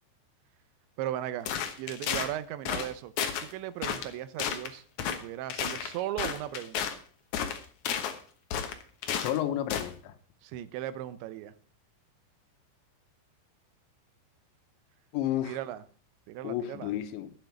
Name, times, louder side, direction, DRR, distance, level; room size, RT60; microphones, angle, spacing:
voice 1, 1.0-1.5 1.8-3.1 3.4-7.0 10.4-11.5 15.4-15.8 16.3-17.0, right 12 dB, 85° right, 14 dB, 3.1 m, -37 dB
sound 1, 1.5-2.3 2.7-2.9 3.2-3.5 3.8-4.1 4.4-4.7 5.0-5.2 5.5-7.0 7.3-8.2 8.5-9.4 9.7-9.9, left 8 dB, 70° left, 1.9 m, -32 dB
voice 2, 9.2-10.1 15.1-15.6 16.4-17.3, left 12 dB, 85° left, 10 dB, 3.4 m, -31 dB
12.0 x 9.1 x 6.0 m, 0.43 s
omnidirectional pair, 5.1 m